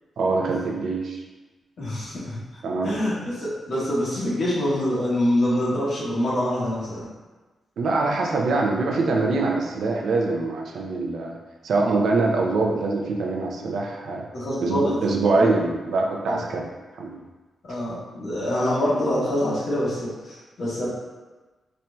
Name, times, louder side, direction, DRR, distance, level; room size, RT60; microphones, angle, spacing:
voice 1, 0.2-1.2 2.6-2.9 7.8-11.4 11.6-14.2 14.6-16.6 17.0-17.2, right 3 dB, 75° right, 0 dB, 0.5 m, -24 dB
voice 2, 1.8-2.4 2.8-7.1 14.3-15.0 15.3-15.6 16.3-16.4 17.6-20.9, left 1 dB, 60° left, -8 dB, 1.3 m, -25 dB
4.2 x 2.6 x 2.2 m, 1.2 s
cardioid pair, 115°, 0 cm